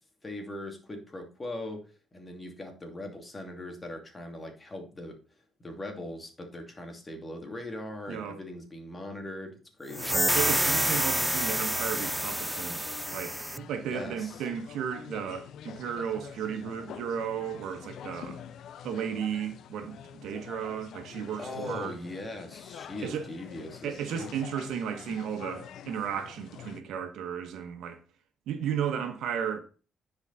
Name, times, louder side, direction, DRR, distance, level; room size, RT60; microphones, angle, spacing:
voice 1, 0.2-5.2 5.6-10.1 13.9-14.4 21.4-24.3, left 1 dB, 25° left, 2.7 m, -40 dB
voice 2, 8.1-8.4 10.3-12.8 13.1-18.4 18.8-21.9 23.0-23.3 23.8-28.0 28.5-29.6, right 8 dB, 85° right, 1.5 m, -34 dB
sound 1, 9.9-26.8, left 9 dB, 75° left, 0.6 m, -46 dB
sound 2, 9.9-13.6, right 1 dB, 5° right, 0.3 m, -28 dB
10.0 x 5.2 x 4.1 m
cardioid pair, 90°, 0 cm